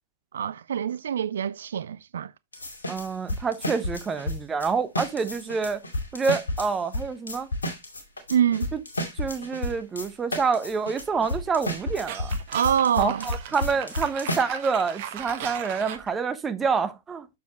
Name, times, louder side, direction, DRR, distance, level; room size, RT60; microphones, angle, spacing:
voice 1, 0.3-2.3 8.3-8.7 12.5-13.3, right 9 dB, 65° right, 0.3 m, -25 dB
sound 1, 2.5-4.7 5.0-14.4, left 1 dB, 80° left, 2.4 m, -31 dB
voice 2, 2.9-5.8 6.1-7.5 8.7-8.8 9.1-12.4 13.0-17.3, right 5 dB, 15° right, 0.9 m, -27 dB
sound 2, 11.0-16.1, right 9 dB, 50° right, 1.3 m, -38 dB
6.9 x 6.7 x 3.0 m
figure-of-eight pair, 110°, 0 cm